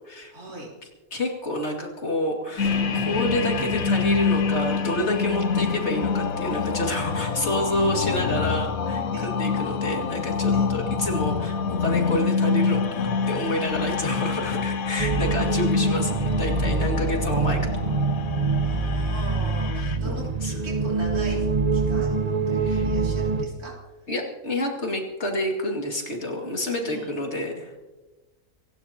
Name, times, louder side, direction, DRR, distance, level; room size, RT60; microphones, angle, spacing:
voice 1, 0.3-0.7 9.1-9.3 10.5-10.7 18.6-23.7 24.0-24.1 26.8-27.2, right 1 dB, 80° right, -4 dB, 3.9 m, -40 dB
voice 2, 1.1-17.6 18.8-19.0 20.0-20.5 22.6-22.9 24.1-27.7, left 1 dB, 45° left, 1 dB, 2.7 m, -29 dB
sound 1, 2.6-20.0, left 5 dB, 70° left, 1.4 m, -26 dB
Boom, 2.6-6.0, right 3 dB, 45° right, 1.5 m, -38 dB
sound 2, 15.0-23.5, right 4 dB, 30° right, 0.9 m, -25 dB
27.0 x 16.5 x 2.9 m, 1.2 s
omnidirectional pair, 1.6 m